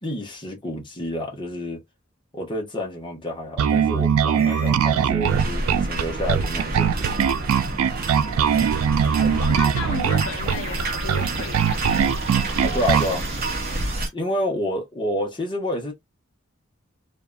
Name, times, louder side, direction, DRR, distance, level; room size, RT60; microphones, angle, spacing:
voice 1, 0.0-1.8 2.3-7.2 12.6-13.3 14.1-15.9, left 1 dB, 25° left, 1.0 m, -29 dB
Bass guitar, 3.6-13.2, right 8 dB, 85° right, 0.3 m, -21 dB
sound 1, 4.4-4.8 8.5-14.1, right 1 dB, 30° right, 1.0 m, -37 dB
sound 2, 5.2-14.1, right 2 dB, 45° right, 0.7 m, -29 dB
voice 2, 9.2-12.2, left 5 dB, 65° left, 0.5 m, -34 dB
2.7 x 2.4 x 2.2 m
head